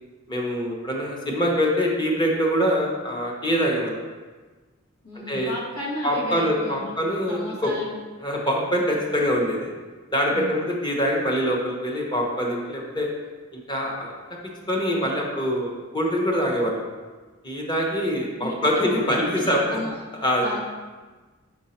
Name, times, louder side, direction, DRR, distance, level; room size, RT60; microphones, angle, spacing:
voice 1, 0.3-4.0 5.3-5.5 6.0-7.7 8.2-9.7 10.1-13.1 13.5-14.1 14.7-16.8 17.4-19.8 20.2-20.5, equal, 20° left, -1 dB, 1.0 m, -24 dB
voice 2, 5.0-6.9 7.3-7.9 10.3-10.6 18.4-18.5 19.0-20.0 20.4-20.6, left 1 dB, 85° left, -3 dB, 1.5 m, -33 dB
5.7 x 4.6 x 4.3 m, 1.3 s
head